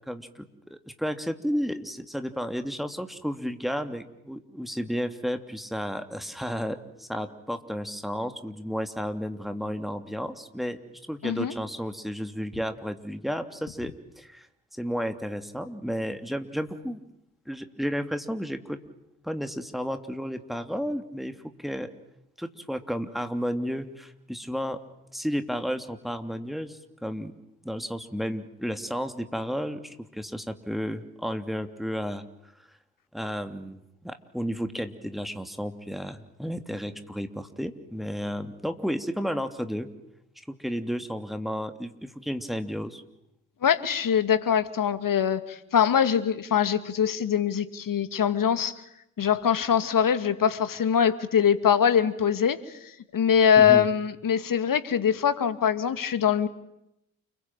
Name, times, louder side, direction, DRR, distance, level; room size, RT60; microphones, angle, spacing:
voice 1, 0.1-10.8 11.1-14.5 14.8-17.0 17.5-18.8 19.2-21.9 22.4-24.8 25.1-27.3 27.6-32.5 33.1-39.9 40.4-43.0 53.6-53.9, equal, ahead, 8 dB, 3.0 m, -32 dB
voice 2, 11.2-11.5 43.6-48.7 49.2-52.6 53.1-56.5, left 8 dB, 50° left, 12 dB, 2.4 m, -23 dB
29.5 x 22.5 x 9.1 m, 0.82 s
figure-of-eight pair, 45°, 44 cm